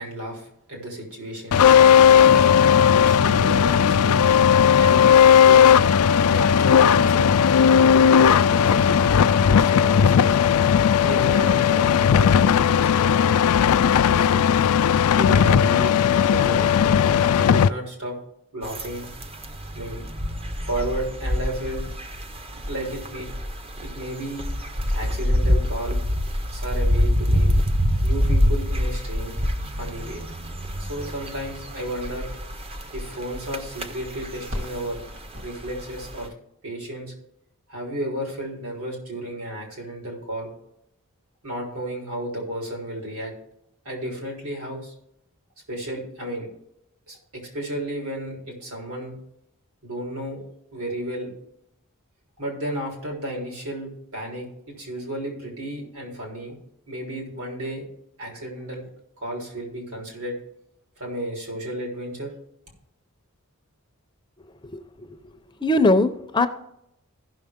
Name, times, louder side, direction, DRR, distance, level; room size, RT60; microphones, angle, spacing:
voice 1, 0.0-1.6 2.1-4.2 4.7-5.1 5.4-5.7 6.2-7.4 7.7-9.0 9.4-10.4 11.0-14.5 15.1-18.2 18.5-19.1 19.7-20.1 20.6-21.8 22.7-23.3 23.8-24.5 24.9-26.0 26.5-27.5 28.0-29.4 29.7-30.2 30.8-32.3 32.9-35.0 35.4-36.3 36.6-37.1 37.7-40.5 41.4-43.3 43.8-44.9 45.7-46.5 47.1-49.2 49.8-50.5 50.7-51.3 52.4-56.6 56.9-57.9 58.2-58.9 59.2-60.3 61.0-62.3, right 1 dB, 75° right, 0 dB, 3.9 m, -33 dB
sound 1, 1.5-17.7, left 8 dB, 80° left, 0.4 m, -16 dB
sound 2, 18.6-36.3, equal, 25° right, 0.6 m, -26 dB
sound 3, 24.8-35.7, left 1 dB, 60° right, 2.7 m, -44 dB
voice 2, 65.6-66.5, left 2 dB, 20° left, 9 dB, 0.5 m, -20 dB
15.5 x 6.1 x 3.6 m, 0.79 s
head